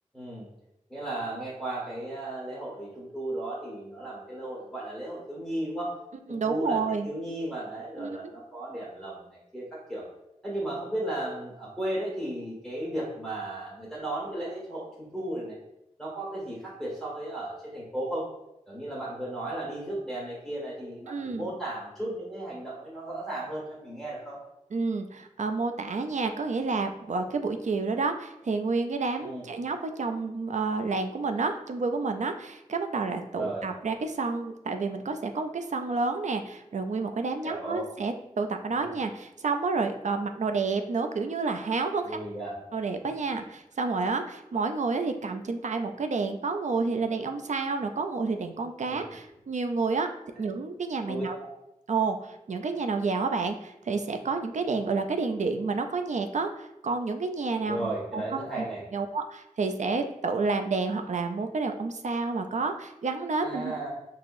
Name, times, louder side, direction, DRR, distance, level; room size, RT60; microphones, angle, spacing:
voice 1, 0.1-0.5 0.9-5.9 6.3-6.8 7.0-9.2 9.5-10.0 10.4-15.5 16.0-18.3 18.7-24.4 29.2-29.4 33.3-33.7 37.4-37.9 42.1-42.5 51.0-51.2 57.6-58.8 63.4-63.9, right 1 dB, ahead, -8 dB, 1.4 m, -35 dB
voice 2, 6.3-7.1 8.0-8.2 21.1-21.5 24.7-42.2 42.7-50.1 50.4-51.4 51.9-58.6 58.9-63.7, right 4 dB, 65° right, 6 dB, 0.4 m, -30 dB
4.6 x 2.9 x 2.6 m, 0.85 s
wide cardioid pair, 55°, 13 cm